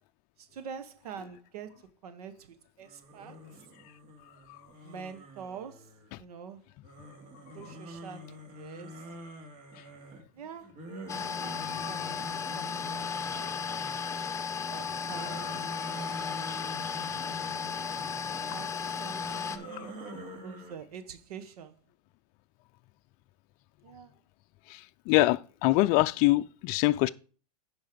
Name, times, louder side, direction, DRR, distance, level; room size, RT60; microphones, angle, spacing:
voice 1, 0.4-3.4 4.8-5.9 6.2-6.6 7.5-9.0 10.3-10.8 11.4-13.6 14.5-15.5 15.9-16.5 18.5-21.8 23.8-24.1, right 6 dB, 75° right, 1.1 m, -46 dB
sound 1, 2.8-6.2 6.8-14.3 14.7-18.6 19.2-20.7, equal, 40° right, 2.5 m, -47 dB
sound 2, 11.1-19.6, left 6 dB, 15° left, 0.9 m, -35 dB
voice 2, 11.6-12.1 15.8-15.9 19.7-19.9 24.7-27.1, left 18 dB, 45° left, 0.4 m, -25 dB
10.5 x 4.6 x 5.0 m
hypercardioid pair, 120°, 19 cm